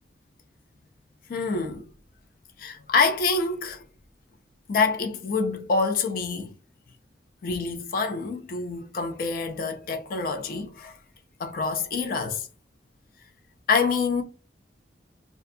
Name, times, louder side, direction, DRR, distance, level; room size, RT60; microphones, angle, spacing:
voice 1, 1.3-1.8 2.6-3.8 4.7-6.5 7.4-11.0 11.4-12.5 13.7-14.2, left 4 dB, 55° left, 0.4 m, -26 dB
2.5 x 2.2 x 2.5 m
head